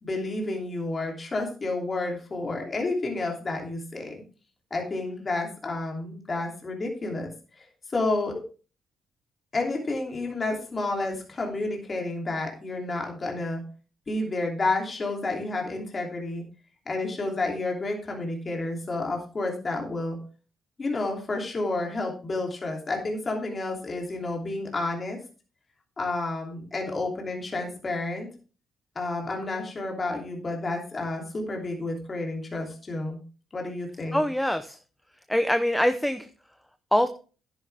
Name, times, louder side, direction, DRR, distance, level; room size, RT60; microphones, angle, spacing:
voice 1, 0.0-4.2 4.7-7.3 7.6-8.4 9.5-13.6 14.1-16.4 16.9-20.2 20.8-25.2 26.0-28.3 28.9-33.2 33.5-34.2, left 2 dB, 35° left, 1 dB, 2.9 m, -30 dB
voice 2, 34.1-34.8 35.3-36.3 36.9-37.1, equal, 5° left, 10 dB, 0.8 m, -23 dB
10.5 x 10.0 x 3.5 m, 0.36 s
cardioid pair, 90°, 0 cm